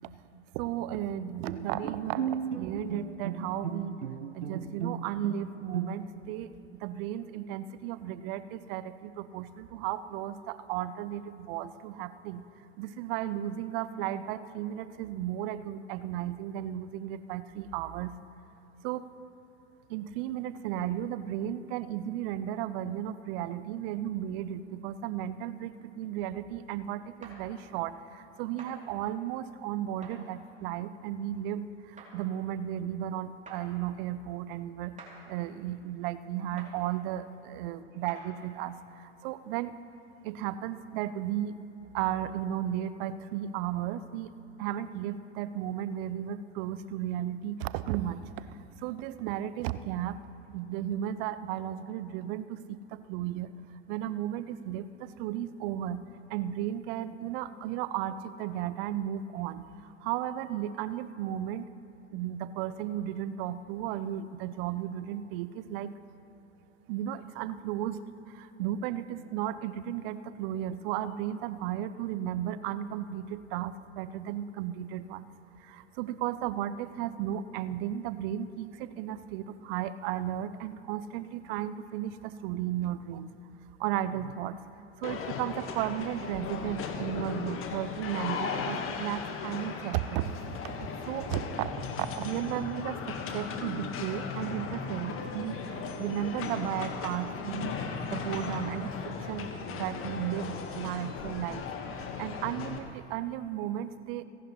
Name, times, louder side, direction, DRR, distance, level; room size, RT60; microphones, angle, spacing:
voice 1, 0.5-4.0 4.3-12.4 12.8-18.1 18.8-19.0 19.9-39.8 40.2-41.5 41.9-44.3 44.6-50.2 50.5-53.5 53.9-61.7 62.1-65.9 66.9-68.0 68.3-75.3 75.6-83.3 83.8-84.6 85.0-90.8 91.1-91.7 92.0-101.6 101.9-104.2, right 11 dB, 55° right, 14 dB, 0.7 m, -34 dB
Bowed string instrument, 1.4-6.3, right 7 dB, 85° right, 0.8 m, -36 dB
sound 1, 27.2-27.4 28.6-28.7 30.0-30.2 32.0-32.1 33.5-33.6 35.0-35.1 36.6-36.7 38.1-38.2, right 4 dB, 20° right, 3.1 m, -47 dB
sound 2, 85.0-102.8, left 5 dB, 40° left, 1.5 m, -37 dB
29.5 x 11.0 x 3.1 m, 2.7 s
figure-of-eight pair, 80°, 35 cm